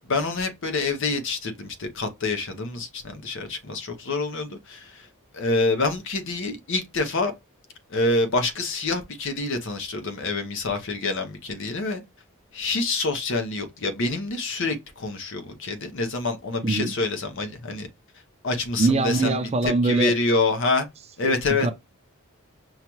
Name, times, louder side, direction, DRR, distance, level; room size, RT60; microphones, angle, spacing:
voice 1, 0.1-5.1 5.3-7.3 7.9-12.0 12.5-17.9 18.4-20.9 21.2-21.7, left 3 dB, 60° left, 0.8 m, -26 dB
voice 2, 18.8-20.1 21.2-21.3 21.6-21.7, right 3 dB, 30° right, 0.5 m, -22 dB
5.5 x 2.3 x 3.0 m
head